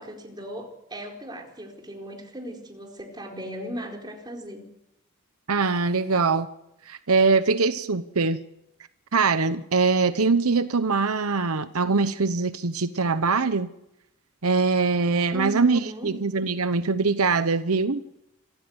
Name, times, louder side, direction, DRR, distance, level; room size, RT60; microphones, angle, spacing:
voice 1, 0.0-4.6 15.3-16.1, right 1 dB, 20° right, 1 dB, 4.6 m, -37 dB
voice 2, 5.5-6.5 6.9-8.4 9.1-13.7 14.4-18.0, right 4 dB, 85° right, 11 dB, 1.0 m, -23 dB
26.5 x 14.5 x 8.1 m, 0.83 s
head